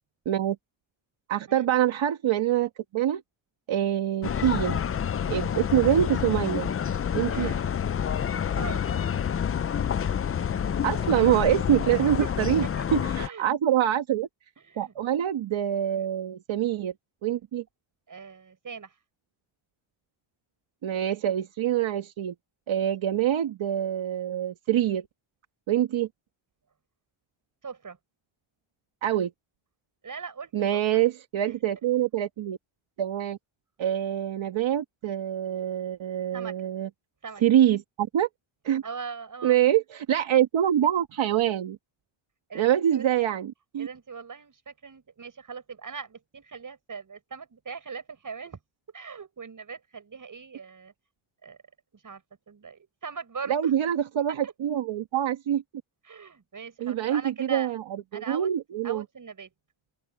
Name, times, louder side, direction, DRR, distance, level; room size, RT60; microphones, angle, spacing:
voice 1, 0.2-0.6 1.3-3.2 3.7-4.8 5.3-6.7 7.1-7.5 10.8-12.6 12.9-14.3 14.8-16.9 17.2-17.6 20.8-22.3 22.7-25.1 25.7-26.1 29.0-29.3 30.5-32.6 33.0-33.4 33.8-36.9 37.4-38.3 38.6-38.8 39.4-41.8 42.5-43.9 53.5-55.6 56.8-57.8 58.1-59.0, right 11 dB, 70° right, 1.5 m, -25 dB
sound 1, 4.2-13.3, left 8 dB, 30° left, 0.4 m, -28 dB
voice 2, 7.3-7.6 8.5-8.8 12.0-12.3 12.6-12.9 13.2-13.5 14.6-14.9 18.1-18.9 27.6-28.0 30.0-31.0 36.3-36.6 37.2-37.4 38.8-39.6 42.5-43.1 43.8-48.6 48.9-50.9 51.4-51.6 51.9-53.7 54.3-54.5 56.0-57.7 58.1-58.5 58.8-59.5, right 5 dB, 40° right, 7.4 m, -40 dB
open air
wide cardioid pair, 130°, 49 cm